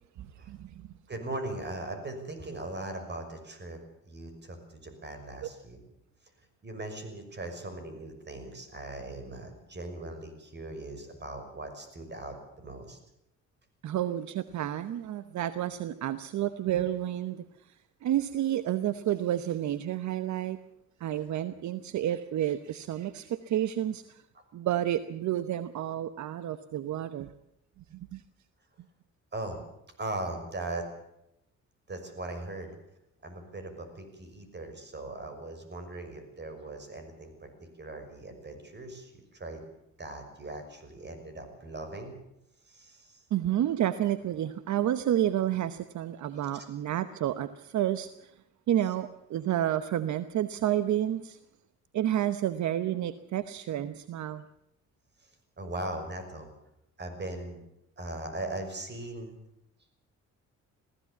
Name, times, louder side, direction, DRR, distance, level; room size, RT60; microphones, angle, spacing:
voice 1, 0.2-0.9 13.8-17.4 18.0-20.6 21.0-24.2 24.5-27.3 27.9-28.2 43.3-48.3 48.7-51.4 51.9-54.4, right 12 dB, 70° right, 13 dB, 0.9 m, -30 dB
voice 2, 1.1-5.8 6.6-13.0 24.3-24.4 29.3-29.6 30.0-30.9 31.9-32.7 33.2-37.5 37.8-39.6 40.0-42.1 42.6-43.2 46.5-46.6 55.2-55.3 55.6-56.5 57.0-57.6 58.0-59.4, right 2 dB, 35° right, 7 dB, 6.0 m, -39 dB
20.5 x 15.5 x 8.4 m, 0.82 s
cardioid pair, 90°, 30 cm